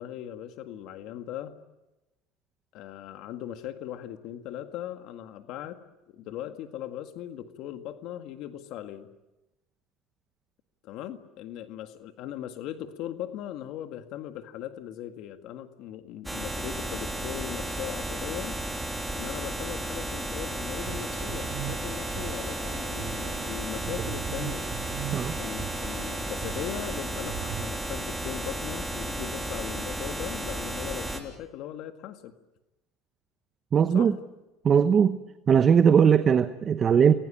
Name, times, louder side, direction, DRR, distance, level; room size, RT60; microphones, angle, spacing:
voice 1, 0.0-1.5 2.7-5.8 6.1-9.1 10.8-18.6 19.1-24.7 25.4-32.4 33.9-34.1, left 11 dB, 60° left, 7 dB, 1.8 m, -39 dB
sound 1, 16.2-31.2, right 1 dB, 5° right, 3.4 m, -33 dB
sound 2, 20.8-27.7, right 11 dB, 60° right, 2.3 m, -40 dB
voice 2, 33.7-34.1 34.6-35.2 35.5-37.1, right 7 dB, 30° right, 10 dB, 1.0 m, -19 dB
29.0 x 21.5 x 8.8 m, 1.0 s
cardioid pair, 135°, 0 cm